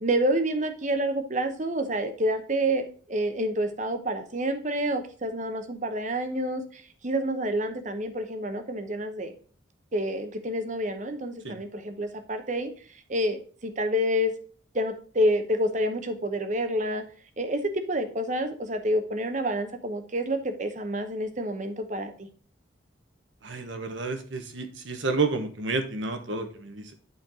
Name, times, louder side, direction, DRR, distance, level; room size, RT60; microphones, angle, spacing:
voice 1, 0.0-9.3 9.9-12.7 13.1-14.3 14.7-17.0 17.4-22.3, equal, 40° right, 8 dB, 0.9 m, -28 dB
voice 2, 23.4-26.9, right 3 dB, 75° right, 6 dB, 1.3 m, -30 dB
8.5 x 4.5 x 3.7 m, 0.43 s
head